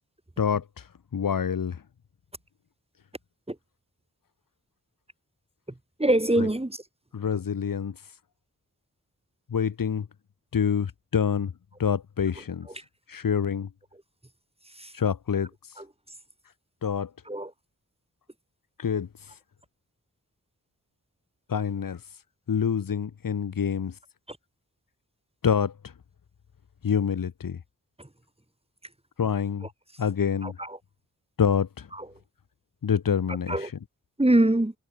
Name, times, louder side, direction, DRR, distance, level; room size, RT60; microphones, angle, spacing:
voice 1, 0.4-1.8 6.4-6.5 7.1-8.0 9.5-10.1 10.5-11.5 11.8-12.7 13.1-13.7 14.9-15.5 16.8-17.1 18.8-19.4 21.5-22.0 22.5-24.0 25.4-25.9 26.8-27.6 29.2-29.7 30.0-30.6 31.4-31.9 32.8-33.7, left 7 dB, 90° left, 2.1 m, -27 dB
voice 2, 6.0-6.8 12.8-12.9 14.7-14.9 15.8-15.9 17.3-17.5 24.3-24.4 28.0-28.1 30.4-30.8 32.0-32.1 33.5-33.7 34.2-34.7, right 1 dB, 20° right, 5.7 m, -24 dB
wide cardioid pair, 65°, 33 cm